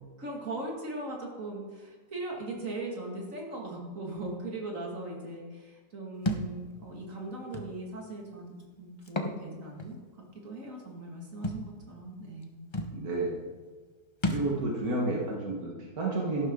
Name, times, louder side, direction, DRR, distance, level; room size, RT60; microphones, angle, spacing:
voice 1, 0.2-8.5 8.8-10.0 10.3-13.0, right 2 dB, 60° right, -1 dB, 2.8 m, -39 dB
Thump thud, 6.3-6.5 7.5-7.7 9.0-9.4 9.8-9.9 11.4-11.6 12.4-12.5 12.7-13.0 14.2-14.5, left 1 dB, 25° left, 0.7 m, -31 dB
voice 2, 12.9-13.5 14.3-16.5, right 2 dB, 80° right, -3 dB, 2.2 m, -31 dB
13.0 x 12.0 x 3.9 m, 1.4 s
omnidirectional pair, 1.5 m